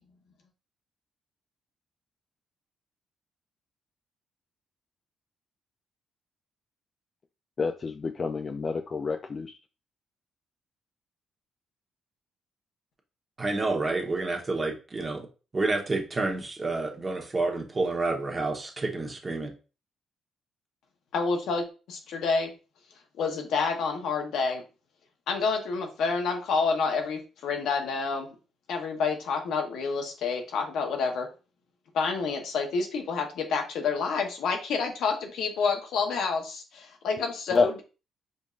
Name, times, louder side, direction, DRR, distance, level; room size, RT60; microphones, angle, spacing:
voice 1, 7.6-9.5 37.5-37.7, left 4 dB, 40° left, 5 dB, 0.3 m, -28 dB
voice 2, 13.4-15.3 15.5-19.5, right 3 dB, 30° right, 2 dB, 1.0 m, -29 dB
voice 3, 21.1-22.5 23.2-24.6 25.3-28.3 28.7-31.3 31.9-37.8, left 5 dB, 80° left, 3 dB, 0.9 m, -28 dB
5.1 x 2.6 x 2.4 m, 0.33 s
cardioid pair, 90°, 0 cm